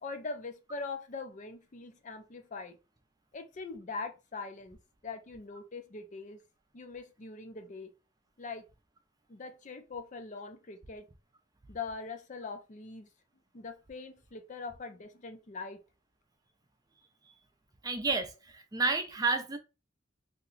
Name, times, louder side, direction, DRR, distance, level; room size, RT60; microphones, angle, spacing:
voice 1, 0.0-2.8 3.3-4.8 5.0-6.4 6.7-7.9 8.4-8.6 9.3-11.1 11.7-13.1 13.5-15.8, left 4 dB, 40° left, 0.5 m, -42 dB
voice 2, 17.8-19.6, right 3 dB, 20° right, 0.5 m, -30 dB
2.8 x 2.2 x 3.8 m
head